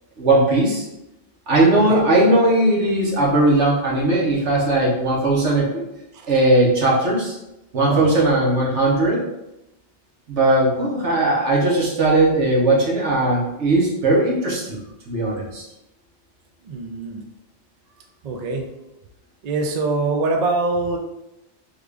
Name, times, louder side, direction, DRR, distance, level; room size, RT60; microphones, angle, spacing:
voice 1, 0.2-0.9 1.5-5.8 6.3-7.4 7.7-9.2 10.3-14.8 15.1-15.6, right 2 dB, 75° right, -3 dB, 1.3 m, -18 dB
voice 2, 7.9-8.3 16.7-17.2 18.2-18.7 19.4-21.0, right 3 dB, 55° right, 2 dB, 0.4 m, -24 dB
3.6 x 2.4 x 3.3 m, 0.92 s
omnidirectional pair, 1.2 m